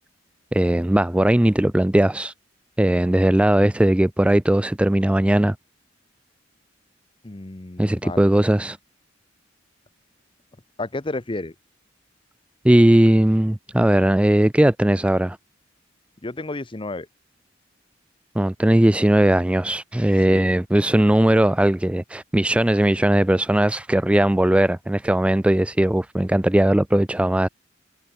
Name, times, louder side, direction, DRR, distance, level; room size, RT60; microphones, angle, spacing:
voice 1, 0.5-2.3 2.8-5.6 7.8-8.8 12.6-15.4 18.4-27.5, right 1 dB, 5° right, 0.4 m, -18 dB
voice 2, 7.2-8.2 10.8-11.5 16.2-17.1 20.3-20.5, left 2 dB, 25° left, 0.8 m, -31 dB
head